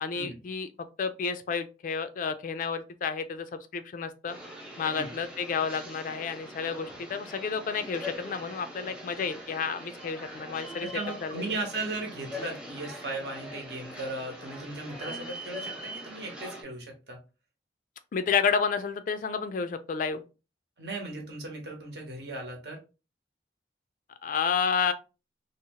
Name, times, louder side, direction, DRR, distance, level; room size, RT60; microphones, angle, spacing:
voice 1, 0.0-0.7 1.0-3.5 3.7-4.3 4.8-10.9 11.2-11.4 18.1-20.2 24.2-24.9, left 6 dB, 45° left, 0.3 m, -30 dB
sound 1, 4.3-16.6, equal, 5° right, 0.6 m, -42 dB
voice 2, 10.8-17.2 20.8-22.8, right 2 dB, 65° right, 0.9 m, -37 dB
2.7 x 2.0 x 2.8 m
head